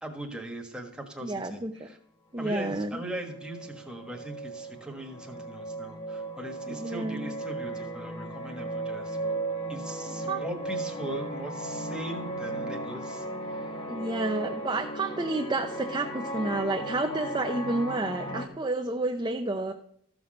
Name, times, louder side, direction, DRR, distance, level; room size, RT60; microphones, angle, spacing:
voice 1, 0.0-2.0 2.4-9.4 9.7-13.2 13.5-13.7, right 1 dB, 5° right, 2 dB, 1.4 m, -40 dB
voice 2, 1.2-1.9 2.3-3.0 6.7-7.3 10.3-10.4 13.9-19.7, right 2 dB, 20° right, 3 dB, 0.6 m, -30 dB
sound 1, 3.0-18.5, right 2 dB, 20° left, 1.2 m, -36 dB
14.0 x 5.9 x 6.4 m, 0.69 s
head